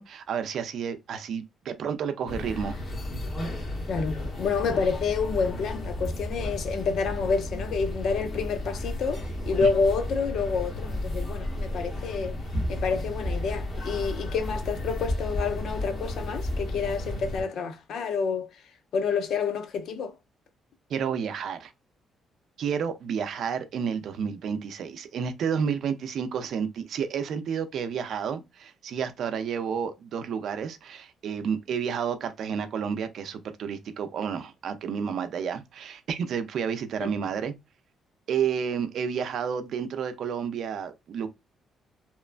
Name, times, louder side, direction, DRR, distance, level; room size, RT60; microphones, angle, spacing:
voice 1, 0.0-2.8 9.6-9.7 20.9-21.7 22.6-37.5 38.3-41.3, right 7 dB, 70° right, 0.5 m, -30 dB
sound 1, 2.3-17.4, left 1 dB, 40° left, 1.0 m, -33 dB
voice 2, 3.9-12.4 12.7-18.6 18.9-20.2 37.0-37.3, left 5 dB, 70° left, 0.5 m, -28 dB
3.0 x 2.1 x 2.4 m
cardioid pair, 90°, 0 cm